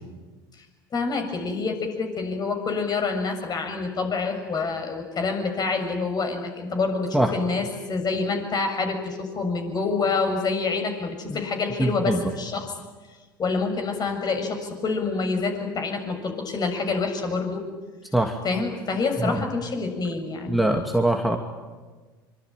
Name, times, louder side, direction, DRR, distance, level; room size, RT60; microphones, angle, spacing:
voice 1, 0.9-12.7 13.4-17.6 18.4-20.6, left 4 dB, 35° left, 5 dB, 7.1 m, -27 dB
voice 2, 11.8-12.2 18.1-18.4 19.2-19.4 20.5-21.4, right 1 dB, ahead, 3 dB, 2.6 m, -22 dB
25.0 x 25.0 x 9.3 m, 1.3 s
hypercardioid pair, 75°, 12 cm